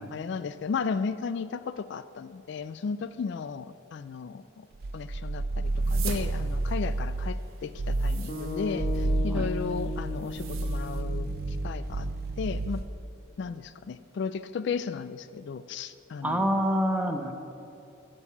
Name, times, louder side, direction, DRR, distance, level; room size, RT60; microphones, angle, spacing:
voice 1, 0.0-4.7 4.9-12.1 12.4-12.8 13.4-16.4, left 5 dB, 55° left, 14 dB, 0.3 m, -34 dB
sound 1, 4.7-7.4 7.7-8.3 8.7-12.9, right 2 dB, 50° right, 0.5 m, -30 dB
sound 2, 5.6-11.0, right 6 dB, 80° right, 1.2 m, -44 dB
sound 3, 8.3-12.5, left 2 dB, 35° left, 1.9 m, -37 dB
voice 2, 16.2-17.3, equal, 5° right, 4 dB, 0.7 m, -26 dB
13.0 x 5.4 x 8.2 m, 2.7 s
head